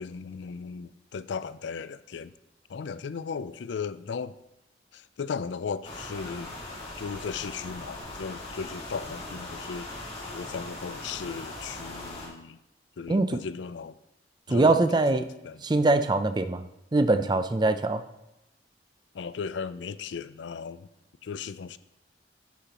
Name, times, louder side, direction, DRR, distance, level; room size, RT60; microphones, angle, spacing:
voice 1, 0.0-2.3 2.7-4.4 4.9-6.6 7.0-10.0 10.3-12.6 13.0-14.0 14.5-14.8 15.1-15.6 19.1-20.9 21.2-21.8, left 5 dB, 75° left, 15 dB, 0.4 m, -36 dB
sound 1, 5.8-12.3, left 2 dB, 35° left, 2.2 m, -40 dB
voice 2, 13.1-13.4 14.5-15.3 15.6-16.7 16.9-18.0, right 2 dB, 25° right, 10 dB, 0.4 m, -23 dB
9.8 x 8.4 x 2.9 m, 0.89 s
head